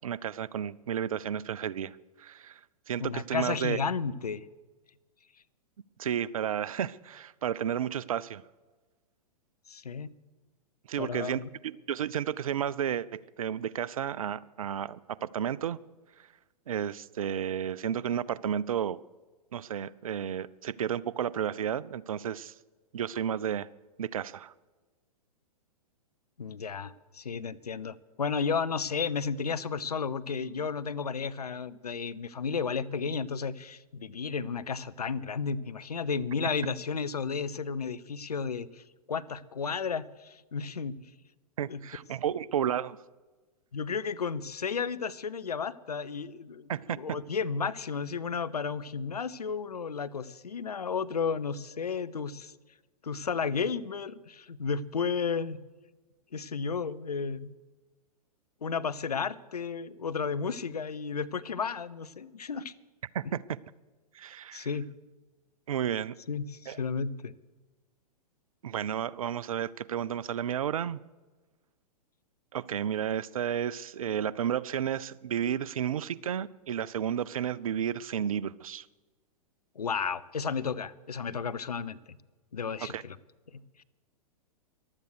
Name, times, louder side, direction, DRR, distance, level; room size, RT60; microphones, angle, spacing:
voice 1, 0.0-2.6 2.9-3.8 6.0-8.4 10.9-15.8 16.7-19.0 19.5-22.5 22.9-23.7 24.0-24.5 41.6-43.0 46.7-47.0 63.1-63.4 64.1-64.7 65.7-66.1 66.7-66.8 68.6-71.0 72.5-78.8 82.9-83.0, right 9 dB, 60° right, 21 dB, 0.5 m, -32 dB
voice 2, 3.0-4.4 9.7-10.1 11.0-11.5 26.4-41.1 41.7-41.8 43.7-52.5 53.0-55.6 56.3-57.5 58.6-62.7 64.5-64.9 66.3-67.3 79.8-82.2 82.5-83.2 83.5-83.8, left 5 dB, 75° left, 15 dB, 0.7 m, -33 dB
15.0 x 11.5 x 6.4 m, 1.3 s
figure-of-eight pair, 110°, 20 cm